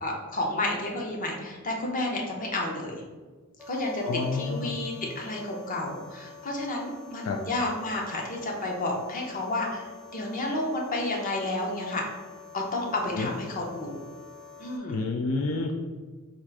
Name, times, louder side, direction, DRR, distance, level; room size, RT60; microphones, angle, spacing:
voice 1, 0.0-3.0 3.7-4.0 4.3-9.8 10.1-12.0 12.5-14.0 14.6-15.0, left 2 dB, 40° left, 0 dB, 0.8 m, -31 dB
sound 1, 3.6-14.8, left 5 dB, ahead, 0.7 m, -47 dB
voice 2, 4.0-4.8 7.2-7.4 13.1-13.3 14.9-15.7, left 3 dB, 70° left, 2 dB, 0.4 m, -29 dB
4.4 x 2.5 x 4.7 m, 1.4 s
head